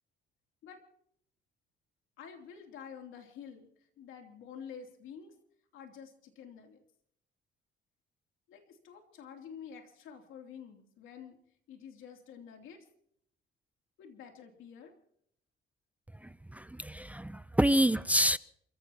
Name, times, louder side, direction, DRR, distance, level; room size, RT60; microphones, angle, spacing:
voice 1, 2.2-3.7 4.0-5.3 5.7-6.8 8.5-11.4 11.7-12.8 14.0-15.0, left 7 dB, 90° left, 3 dB, 3.1 m, -49 dB
voice 2, 16.2-18.4, equal, 5° right, 16 dB, 0.5 m, -28 dB
29.0 x 16.0 x 3.0 m, 0.67 s
cardioid pair, 90°, 20 cm